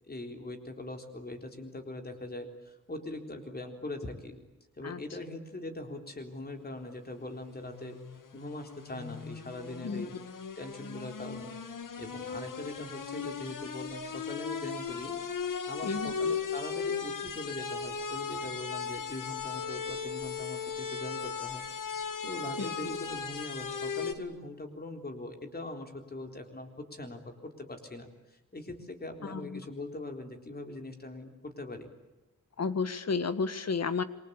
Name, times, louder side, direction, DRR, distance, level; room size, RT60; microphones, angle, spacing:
voice 1, 0.1-4.4 4.8-8.0 8.3-10.1 10.6-11.6 12.0-31.9, left 2 dB, 30° left, 5 dB, 3.8 m, -42 dB
sound 1, 7.4-24.1, left 6 dB, 75° left, 2.1 m, -37 dB
voice 2, 15.8-16.1 22.6-22.7 29.2-29.6 32.6-34.0, left 5 dB, 50° left, 13 dB, 1.6 m, -32 dB
27.5 x 24.0 x 8.8 m, 1.0 s
wide cardioid pair, 170°, 32 cm